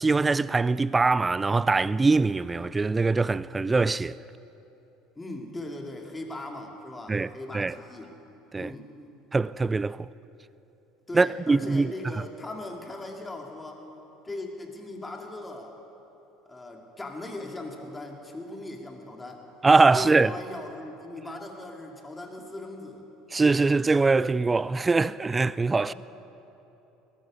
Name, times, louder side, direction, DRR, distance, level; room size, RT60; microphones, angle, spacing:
voice 1, 0.0-4.2 7.1-7.3 7.5-7.7 8.5-8.7 9.3-10.1 11.1-11.9 19.6-20.3 23.3-25.9, right 3 dB, 20° right, 0.3 m, -22 dB
voice 2, 5.2-8.1 8.5-8.9 11.1-13.8 14.2-15.8 16.5-19.4 19.9-23.0 25.9-26.0, left 2 dB, 15° left, 2.3 m, -39 dB
19.0 x 13.0 x 5.3 m
hypercardioid pair, 70°, 0 cm